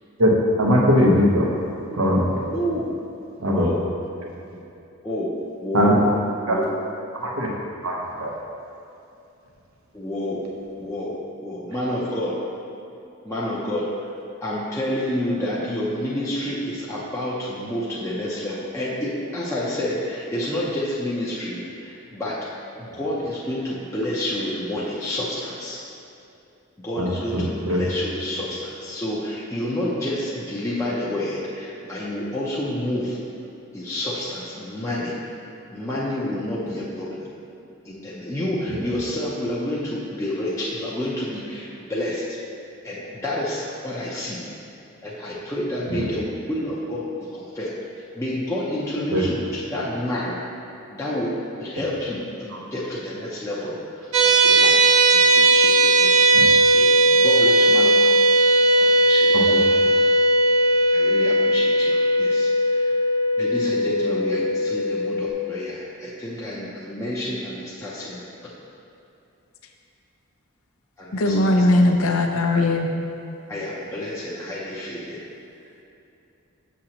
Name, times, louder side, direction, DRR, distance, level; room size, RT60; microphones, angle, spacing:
voice 1, 0.6-1.5 1.9-2.4 3.4-3.7 5.7-6.0 6.5-6.6 7.2-7.5 7.8-8.3 22.9-23.0 27.0-27.8 38.7-38.9 45.9-46.1 49.1-49.2 52.5-52.6 55.1-55.2 56.3-56.4 59.3-59.4, equal, 80° right, -2 dB, 1.0 m, -21 dB
voice 2, 2.5-2.9 3.5-3.8 5.0-5.3 5.6-5.9 6.5-6.7 9.9-10.4 10.8-12.4 13.2-13.9 14.4-22.4 22.8-25.8 26.8-33.2 33.7-35.1 35.7-37.3 37.8-42.4 42.8-44.4 45.0-47.7 48.1-50.4 50.9-51.3 51.6-55.0 55.3-56.2 56.5-58.2 58.5-59.5 60.9-63.0 63.4-68.2 71.0-71.6 73.5-75.2, left 1 dB, 15° left, -7 dB, 0.6 m, -29 dB
sound 1, 54.1-65.3, right 1 dB, 65° right, 0.6 m, -17 dB
voice 3, 71.1-72.9, left 2 dB, 80° left, 3 dB, 0.6 m, -19 dB
6.9 x 6.3 x 2.9 m, 2.7 s
head